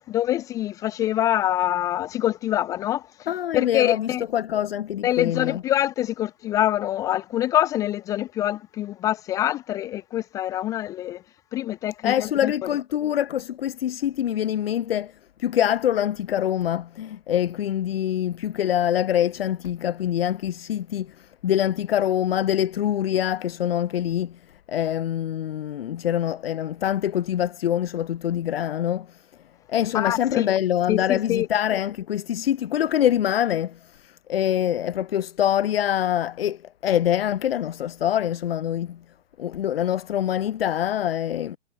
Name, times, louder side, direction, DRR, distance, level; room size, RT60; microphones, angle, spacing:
voice 1, 0.1-3.0 3.5-4.2 5.0-11.2 11.5-12.5 29.9-30.4 30.9-31.5, left 13 dB, 10° left, 0.4 m, -25 dB
voice 2, 3.3-5.6 12.0-15.1 15.4-24.4 24.7-29.2 29.7-39.0 39.4-41.6, left 11 dB, 55° left, 5.6 m, -25 dB
figure-of-eight pair, 110°, 35 cm